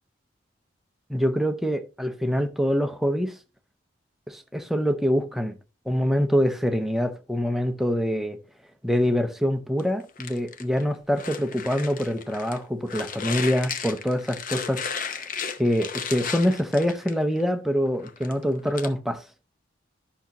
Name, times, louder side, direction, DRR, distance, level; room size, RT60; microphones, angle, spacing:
voice 1, 1.1-3.3 4.3-5.5 5.9-8.4 8.8-15.2 15.6-19.2, equal, ahead, 0.7 m, -25 dB
sound 1, 9.8-12.6 12.9-17.4 17.9-18.9, left 6 dB, 45° left, 0.7 m, -34 dB
11.0 x 5.8 x 3.0 m
head